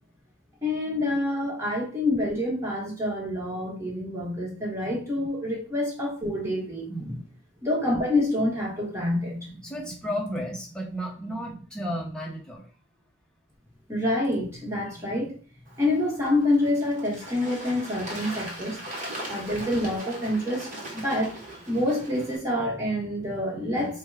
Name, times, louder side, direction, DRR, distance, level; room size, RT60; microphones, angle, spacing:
voice 1, 0.6-7.2 7.6-9.5 13.9-15.4 15.8-18.8 19.3-21.4 21.7-24.0, left 1 dB, 15° right, -4 dB, 1.3 m, -27 dB
voice 2, 9.4-12.6 15.1-15.2 23.5-23.8, equal, 5° left, -1 dB, 0.8 m, -34 dB
Bird / Water, 15.7-22.4, right 1 dB, 40° right, 1.1 m, -39 dB
4.4 x 2.2 x 3.3 m, 0.40 s
head